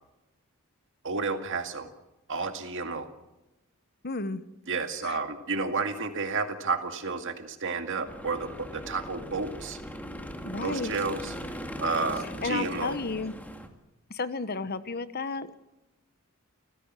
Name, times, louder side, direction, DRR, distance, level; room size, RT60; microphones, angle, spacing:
voice 1, 1.0-1.9 2.3-3.1 4.7-9.8 10.6-11.3 11.8-13.0, right 4 dB, 60° right, 6 dB, 2.1 m, -31 dB
voice 2, 4.0-4.4 5.0-5.2 10.4-10.9 12.2-13.4 14.1-15.5, left 3 dB, 45° left, 13 dB, 1.2 m, -32 dB
sound 1, 8.1-13.7, equal, 5° left, 2.0 m, -39 dB
29.0 x 15.5 x 7.6 m, 0.96 s
head